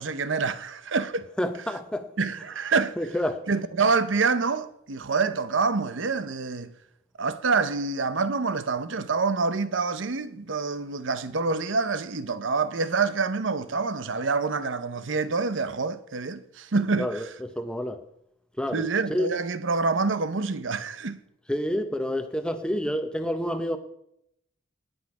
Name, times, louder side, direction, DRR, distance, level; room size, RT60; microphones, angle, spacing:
voice 1, 0.0-1.2 2.2-3.0 3.5-6.7 7.2-17.3 18.7-21.2, right 4 dB, 75° right, 0.8 m, -26 dB
voice 2, 1.4-2.1 3.0-3.5 17.0-18.0 18.6-18.8 19.1-19.3 21.5-23.8, equal, 5° left, 0.7 m, -28 dB
18.5 x 6.3 x 4.8 m
head